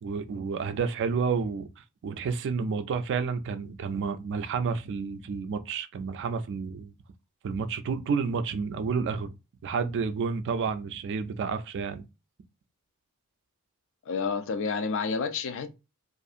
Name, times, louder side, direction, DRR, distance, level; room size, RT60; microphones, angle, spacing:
voice 1, 0.0-6.9 7.4-9.3 9.6-12.0, right 5 dB, 55° right, 0.3 m, -30 dB
voice 2, 14.1-15.7, left 5 dB, 60° left, 0.4 m, -29 dB
2.7 x 2.4 x 2.4 m
head